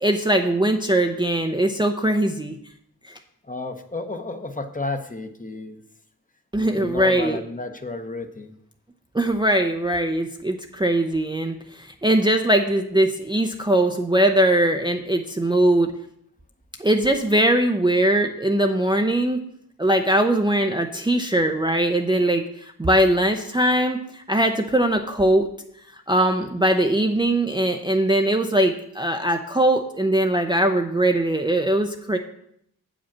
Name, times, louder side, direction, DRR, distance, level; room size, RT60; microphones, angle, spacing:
voice 1, 0.0-2.6 6.5-7.4 9.1-15.9 16.8-19.4 19.8-25.5 26.1-32.2, right 1 dB, 10° right, 4 dB, 0.5 m, -21 dB
voice 2, 3.5-5.8 6.6-8.6, left 2 dB, 20° left, 7 dB, 0.8 m, -32 dB
8.1 x 5.1 x 7.2 m, 0.71 s
wide cardioid pair, 115°, 38 cm